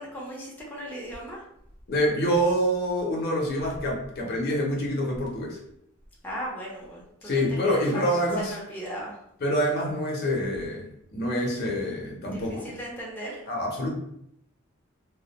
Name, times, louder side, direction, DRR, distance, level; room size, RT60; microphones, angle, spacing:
voice 1, 0.0-1.4 6.2-9.1 12.2-13.4, equal, 10° left, -4 dB, 0.5 m, -37 dB
voice 2, 1.9-5.6 7.2-8.6 9.4-12.8 13.5-13.9, equal, 50° left, -1 dB, 0.6 m, -26 dB
2.3 x 2.0 x 2.8 m, 0.75 s
head